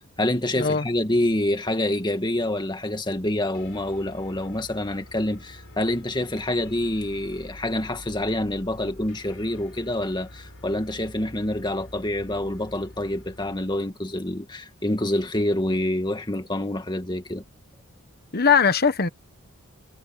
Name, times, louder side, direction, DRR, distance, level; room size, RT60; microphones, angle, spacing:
voice 1, 0.2-17.4, left 1 dB, 20° left, 2.0 m, -27 dB
sound 1, 3.5-13.9, left 1 dB, 60° left, 4.7 m, -46 dB
voice 2, 18.3-19.1, left 6 dB, 45° left, 1.2 m, -20 dB
head